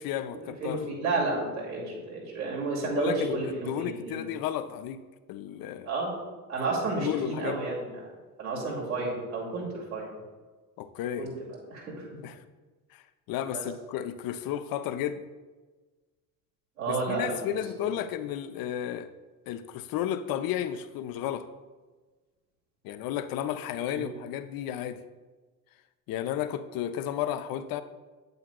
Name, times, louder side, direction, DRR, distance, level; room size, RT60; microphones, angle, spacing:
voice 1, 0.0-0.8 2.8-5.0 5.3-5.9 7.0-7.7 10.8-11.3 12.2-12.4 12.9-15.2 16.9-19.1 19.5-21.5 22.8-25.0 26.1-27.8, left 10 dB, 55° left, 12 dB, 0.6 m, -33 dB
voice 2, 0.6-4.2 5.8-6.2 6.5-8.1 8.4-10.2 11.2-12.1 13.5-13.6 16.8-17.9 23.9-24.1, right 3 dB, 90° right, -5 dB, 2.4 m, -32 dB
8.4 x 7.8 x 2.2 m, 1.3 s
hypercardioid pair, 60°, 42 cm